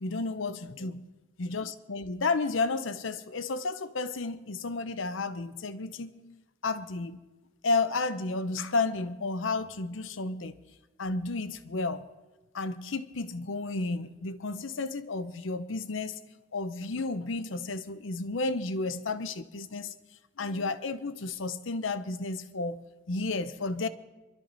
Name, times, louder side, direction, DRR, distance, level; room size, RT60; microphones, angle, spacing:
voice 1, 0.0-1.0 1.4-7.2 7.6-10.6 11.0-12.0 12.5-16.2 16.5-19.9 20.4-23.9, left 3 dB, 85° left, 0.8 m, -32 dB
26.5 x 12.5 x 4.0 m
head